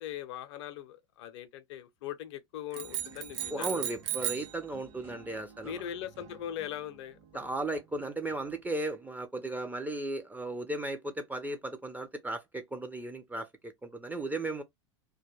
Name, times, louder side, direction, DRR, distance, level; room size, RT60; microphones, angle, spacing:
voice 1, 0.0-3.8 5.6-7.5, left 10 dB, 60° left, 0.5 m, -40 dB
sound 1, 2.7-8.8, right 5 dB, 40° right, 1.0 m, -55 dB
sound 2, 2.7-4.6, right 11 dB, 65° right, 0.7 m, -35 dB
voice 2, 3.5-5.8 7.3-14.6, right 2 dB, 10° right, 0.4 m, -36 dB
2.2 x 2.1 x 3.0 m
hypercardioid pair, 90°, 16 cm